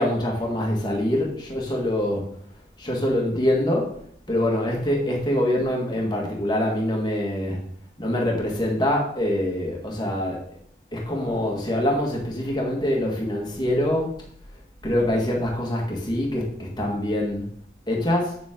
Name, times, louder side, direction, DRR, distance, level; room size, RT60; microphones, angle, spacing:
voice 1, 0.0-2.3 2.8-4.0 4.3-7.6 8.0-10.4 10.9-14.2 14.8-17.5 17.9-18.4, left 1 dB, 25° left, -1 dB, 1.9 m, -24 dB
8.3 x 7.2 x 3.8 m, 0.62 s
head